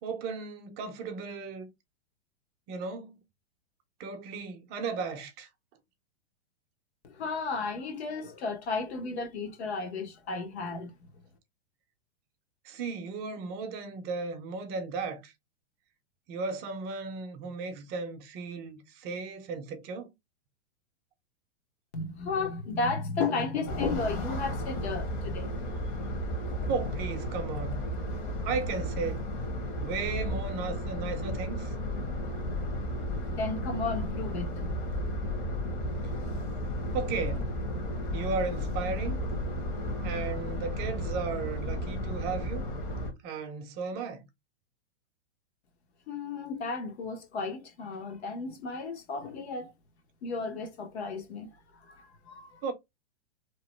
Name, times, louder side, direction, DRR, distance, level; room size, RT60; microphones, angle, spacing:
voice 1, 0.0-1.7 2.7-3.2 4.0-5.5 12.6-15.3 16.3-20.1 26.7-27.8 28.4-29.2 29.8-31.7 36.9-37.5 38.1-39.2 40.0-42.6 43.2-44.2 52.6-52.7, right 4 dB, 30° right, 0.6 m, -35 dB
voice 2, 7.0-10.9 21.9-25.7 33.3-34.9 46.1-49.7 50.2-51.5 51.9-52.6, left 4 dB, 65° left, 1.1 m, -34 dB
sound 1, 23.7-43.1, left 1 dB, 45° left, 1.1 m, -33 dB
2.9 x 2.1 x 3.0 m
hypercardioid pair, 130°, 35 cm